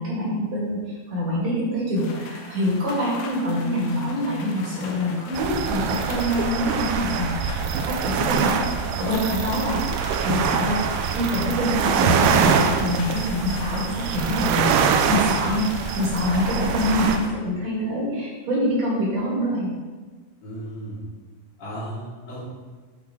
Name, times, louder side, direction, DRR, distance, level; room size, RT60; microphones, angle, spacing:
voice 1, 0.0-10.8 11.1-15.7 15.9-19.7, left 1 dB, 45° right, -6 dB, 2.9 m, -25 dB
sound 1, 2.0-17.3, left 4 dB, 90° left, 3.5 m, -40 dB
sound 2, 5.3-17.2, right 6 dB, 85° right, 2.4 m, -24 dB
voice 2, 20.4-21.0 21.6-22.4, right 1 dB, 35° left, -12 dB, 2.9 m, -35 dB
11.5 x 5.2 x 3.9 m, 1.4 s
omnidirectional pair, 5.3 m